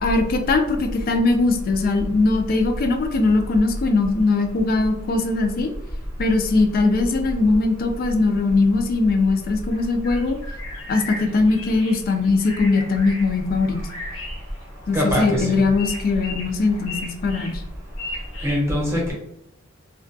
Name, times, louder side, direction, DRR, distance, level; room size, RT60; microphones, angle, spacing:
voice 1, 0.0-5.7 6.2-10.4 10.9-13.8 14.9-17.6, left 3 dB, 45° left, 6 dB, 0.3 m, -20 dB
sound 1, 9.7-18.5, left 2 dB, 65° left, 0.8 m, -37 dB
voice 2, 14.9-15.6 18.4-19.1, equal, 15° right, -4 dB, 0.7 m, -22 dB
2.3 x 2.1 x 2.5 m, 0.80 s
head